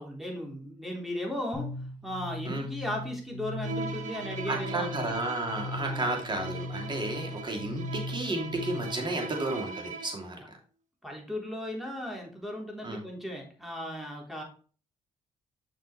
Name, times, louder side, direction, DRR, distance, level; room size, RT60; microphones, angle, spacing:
voice 1, 0.0-5.1 5.8-6.1 7.8-7.9 11.0-14.4, equal, ahead, -1 dB, 3.5 m, -36 dB
sound 1, 1.5-9.1, left 2 dB, 40° left, 2.8 m, -39 dB
Bowed string instrument, 3.6-10.3, right 4 dB, 65° right, 1.2 m, -40 dB
voice 2, 4.5-10.4 12.8-13.0, right 2 dB, 35° right, 2 dB, 2.9 m, -32 dB
6.4 x 6.2 x 3.3 m, 0.40 s
supercardioid pair, 55°, 14 cm